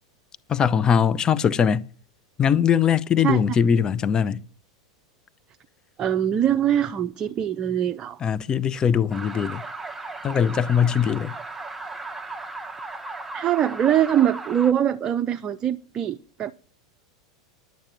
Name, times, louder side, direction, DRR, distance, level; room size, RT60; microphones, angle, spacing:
voice 1, 0.5-1.9 2.4-4.4 8.2-9.6 10.2-11.3, left 7 dB, 30° left, 0.6 m, -21 dB
voice 2, 3.2-3.6 6.0-8.2 13.3-16.5, right 10 dB, 30° right, 0.6 m, -23 dB
sound 1, 9.1-14.7, right 3 dB, 10° right, 1.0 m, -36 dB
10.5 x 8.9 x 7.3 m
hypercardioid pair, 90°, 3 cm